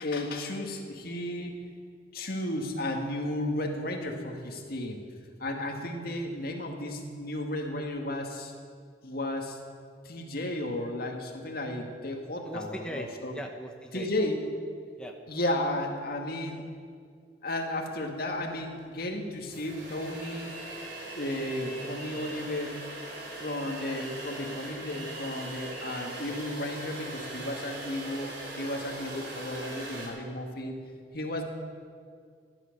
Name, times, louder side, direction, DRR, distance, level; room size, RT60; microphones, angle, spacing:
voice 1, 0.0-1.5 2.1-5.0 5.4-8.5 9.0-9.6 10.0-13.3 13.9-14.4 15.3-16.7 17.4-20.6 21.1-22.8 23.4-30.8 31.1-31.4, left 1 dB, 60° left, 2 dB, 1.9 m, -33 dB
voice 2, 12.4-13.1 13.3-14.1 15.0-15.2, equal, 5° left, 2 dB, 0.9 m, -39 dB
sound 1, 18.8-18.9 19.3-30.1, right 2 dB, 80° right, 4.3 m, -40 dB
16.0 x 11.5 x 6.7 m, 2.2 s
head